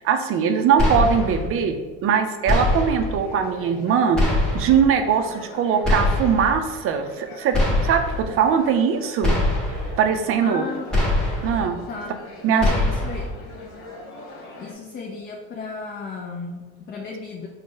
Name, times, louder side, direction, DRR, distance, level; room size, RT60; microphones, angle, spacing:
voice 1, 0.0-1.8 2.0-7.6 7.8-9.4 10.0-10.6 11.4-11.8 12.4-12.7, right 7 dB, 45° right, 7 dB, 0.4 m, -21 dB
sound 1, 0.8-1.5 2.5-3.2 4.1-4.8 5.8-6.5 7.5-8.2 9.2-9.9 10.9-11.6 12.6-13.3, left 1 dB, ahead, 0.9 m, -22 dB
sound 2, 3.2-14.7, left 2 dB, 75° left, 1.1 m, -42 dB
voice 2, 10.4-10.9 11.9-13.3 14.6-17.5, left 4 dB, 30° left, 0 dB, 0.4 m, -34 dB
3.9 x 2.1 x 3.6 m, 1.3 s
supercardioid pair, 100°, 33 cm